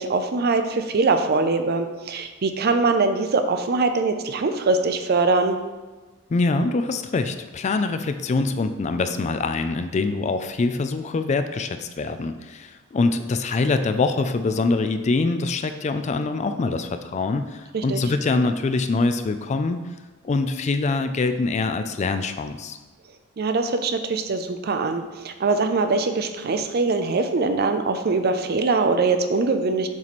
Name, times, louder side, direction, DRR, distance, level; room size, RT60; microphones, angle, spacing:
voice 1, 0.0-5.6 17.7-18.0 23.4-29.9, right 3 dB, 50° right, 7 dB, 0.5 m, -22 dB
voice 2, 6.3-19.8 20.2-22.8, left 3 dB, 35° left, 9 dB, 0.3 m, -24 dB
7.2 x 3.2 x 4.1 m, 1.2 s
head